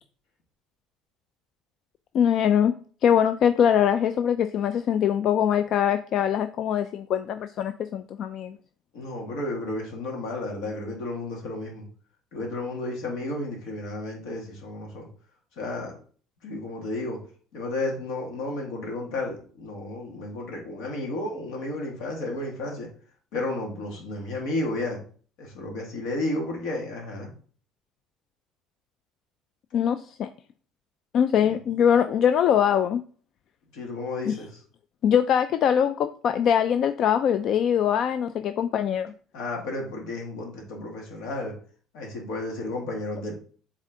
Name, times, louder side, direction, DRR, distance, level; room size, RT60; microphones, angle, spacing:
voice 1, 2.1-2.8 3.0-8.6 29.7-30.3 31.1-33.0 34.3-34.4 35.0-39.1, left 9 dB, 55° left, 10 dB, 0.4 m, -22 dB
voice 2, 8.9-11.9 12.3-15.1 15.6-15.9 16.4-17.2 17.5-22.9 23.3-25.0 25.4-27.3 31.3-31.6 33.7-34.5 39.3-41.5 41.9-43.4, left 2 dB, 80° left, 0 dB, 2.2 m, -32 dB
7.5 x 3.7 x 3.8 m, 0.44 s
cardioid pair, 125°, 0 cm